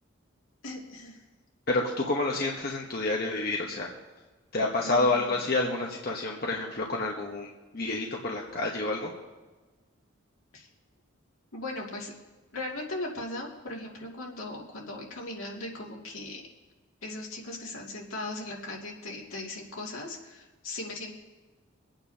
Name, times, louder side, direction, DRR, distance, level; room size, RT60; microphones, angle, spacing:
voice 1, 0.6-1.2 4.8-5.4 10.5-10.7 11.5-12.1 12.5-16.4 17.0-21.1, left 2 dB, 80° left, -2 dB, 2.4 m, -38 dB
voice 2, 1.7-3.9 4.5-9.1, left 2 dB, 45° left, -1 dB, 1.1 m, -29 dB
25.0 x 9.0 x 2.8 m, 1.2 s
head